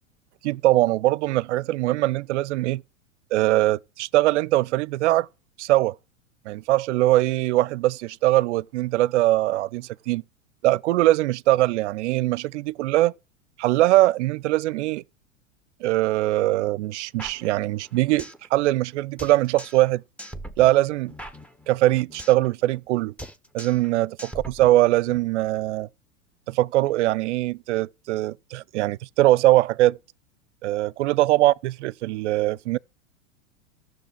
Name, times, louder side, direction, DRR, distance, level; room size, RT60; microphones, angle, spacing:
voice 1, 0.4-2.8 3.3-5.3 5.6-6.0 6.5-10.2 10.6-13.1 13.6-15.0 15.8-20.0 20.6-21.1 21.7-23.1 23.5-24.2 24.5-25.9 26.5-30.0 30.6-32.8, right 16 dB, 60° right, 0.5 m, -21 dB
sound 1, 17.2-18.5 18.7-18.8 19.2-19.9 20.2-22.5 22.7-22.9 23.2-23.9 24.2-25.2, right 1 dB, 5° left, 0.6 m, -41 dB
13.5 x 6.4 x 6.5 m
hypercardioid pair, 100°, 40 cm